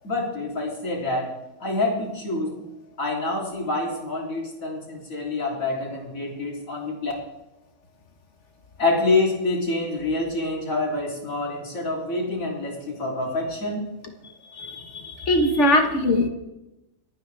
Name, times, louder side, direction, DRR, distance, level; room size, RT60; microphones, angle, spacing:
voice 1, 0.0-1.3 1.6-2.5 3.0-7.1 8.8-13.9, left 2 dB, 75° left, -2 dB, 3.9 m, -26 dB
voice 2, 14.6-16.3, left 1 dB, 60° left, 5 dB, 1.9 m, -21 dB
27.0 x 9.2 x 3.5 m, 0.95 s
omnidirectional pair, 1.4 m